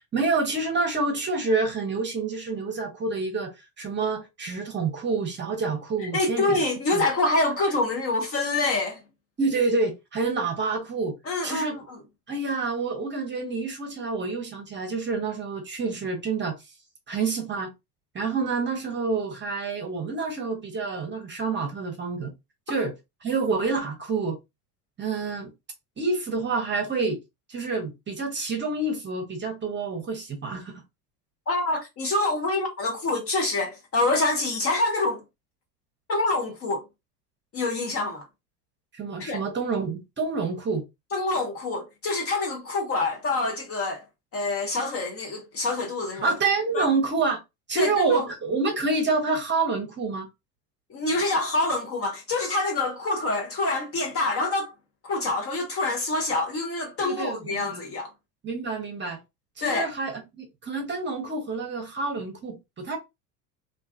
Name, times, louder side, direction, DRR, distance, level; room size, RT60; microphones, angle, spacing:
voice 1, 0.1-6.6 6.9-7.1 9.4-11.1 11.4-11.8 12.3-16.5 17.1-17.7 18.1-22.3 22.7-22.9 23.2-24.4 25.0-25.5 26.0-27.2 27.5-30.8 38.9-40.8 46.2-47.4 47.7-50.3 57.0-57.8 58.4-59.2 59.6-63.0, right 4 dB, 25° right, 0.8 m, -28 dB
voice 2, 6.1-9.0 11.3-12.0 31.5-35.2 36.1-36.8 37.5-38.2 39.2-39.4 41.1-44.0 44.3-46.3 46.7-46.9 47.8-48.2 50.9-54.7 55.0-58.1 59.6-59.9, left 2 dB, 30° left, 0.7 m, -26 dB
2.4 x 2.3 x 2.4 m
hypercardioid pair, 80°, 48 cm